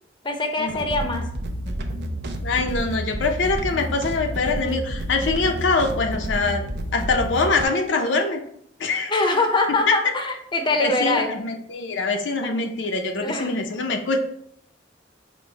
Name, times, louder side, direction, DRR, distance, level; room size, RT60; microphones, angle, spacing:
voice 1, 0.2-1.3 9.1-11.3 12.4-12.5 13.2-13.5, left 2 dB, 25° left, 4 dB, 0.6 m, -23 dB
sound 1, 0.7-7.6, equal, 65° right, 0.5 m, -30 dB
voice 2, 2.4-6.6 6.9-8.4 8.8-9.1 9.9-10.0 10.8-14.2, left 3 dB, 85° left, 3 dB, 0.6 m, -24 dB
5.1 x 2.0 x 4.3 m, 0.69 s
head